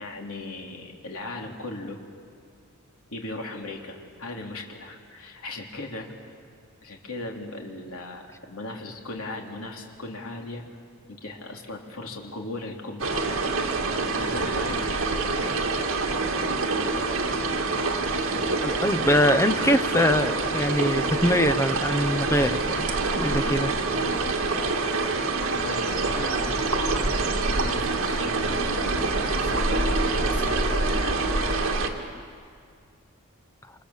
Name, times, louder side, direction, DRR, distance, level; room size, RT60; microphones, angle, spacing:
voice 1, 0.0-2.0 3.1-6.3 6.8-10.7 11.1-13.3 14.2-15.2 25.6-28.6 28.9-31.4, left 2 dB, 70° left, 0 dB, 3.5 m, -38 dB
sound 1, 13.0-31.9, right 3 dB, 60° right, 2.3 m, -26 dB
voice 2, 18.6-22.9 23.2-23.7, equal, 15° left, 11 dB, 0.8 m, -23 dB
28.0 x 27.5 x 7.4 m, 2.2 s
head